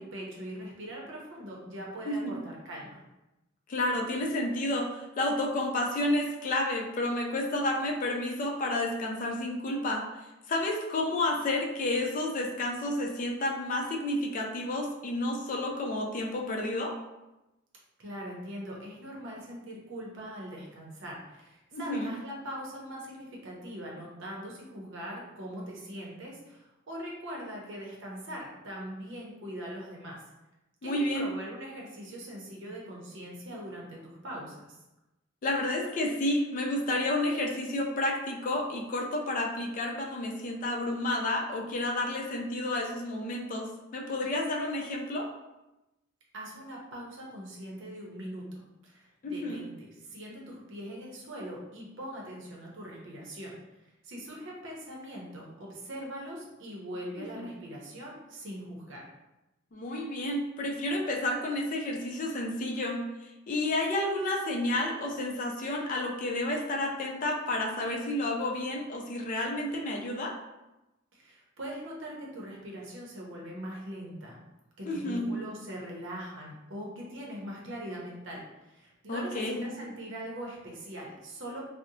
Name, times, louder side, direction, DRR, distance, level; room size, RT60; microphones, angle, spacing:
voice 1, 0.0-3.0 18.0-30.2 30.8-34.8 46.3-53.6 54.0-59.1 71.1-74.4 74.8-81.6, equal, 70° right, -3 dB, 0.7 m, -41 dB
voice 2, 2.0-2.4 3.7-10.0 10.5-16.9 21.7-22.1 30.8-31.3 35.4-45.3 49.2-49.6 57.4-57.5 59.7-70.3 74.8-75.3 79.1-79.6, left 1 dB, 45° left, 0 dB, 0.4 m, -30 dB
2.7 x 2.0 x 2.6 m, 0.98 s
head